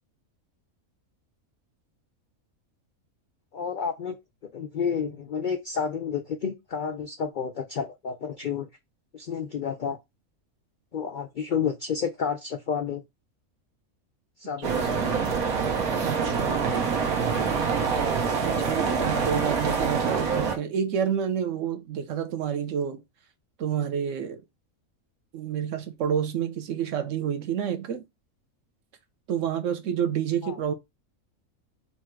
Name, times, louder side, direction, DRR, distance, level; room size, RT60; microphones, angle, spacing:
voice 1, 3.5-4.2 4.5-8.7 9.1-10.0 10.9-13.0 14.4-14.9 30.4-30.6, left 6 dB, 90° left, 0.4 m, -30 dB
sound 1, 14.6-20.6, right 5 dB, 90° right, 1.5 m, -25 dB
voice 2, 16.0-16.8 18.6-23.0 23.6-24.4 25.3-28.1 29.3-30.7, right 8 dB, 70° right, 1.0 m, -29 dB
4.2 x 2.4 x 4.4 m
omnidirectional pair, 1.5 m